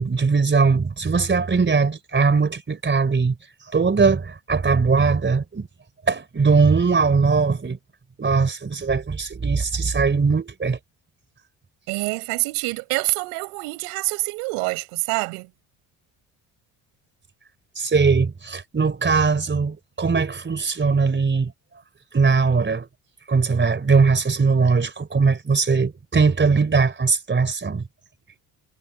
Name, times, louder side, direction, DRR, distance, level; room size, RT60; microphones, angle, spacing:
voice 1, 0.0-3.3 3.7-5.7 6.1-7.8 8.2-10.8 17.8-21.5 22.1-22.9 23.3-27.8, right 4 dB, 25° right, 4.3 m, -20 dB
voice 2, 11.9-15.5, right 31 dB, 85° right, 4.9 m, -26 dB
supercardioid pair, 75°, 41 cm